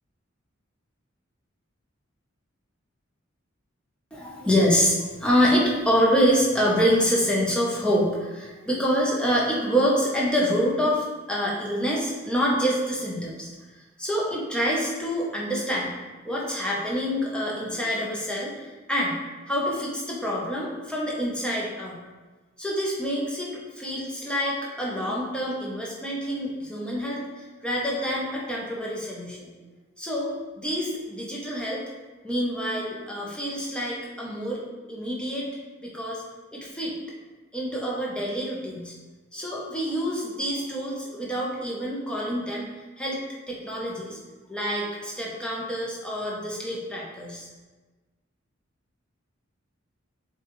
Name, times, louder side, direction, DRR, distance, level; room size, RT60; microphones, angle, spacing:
voice 1, 4.1-13.5 14.0-15.9 16.2-19.2 19.5-22.0 22.6-29.5 30.0-31.8 32.2-34.6 34.9-35.5 35.8-36.2 36.5-36.9 37.5-38.9 39.3-42.7 43.0-44.2 44.5-47.5, equal, 5° left, -4 dB, 0.8 m, -26 dB
6.8 x 2.4 x 3.1 m, 1.2 s
head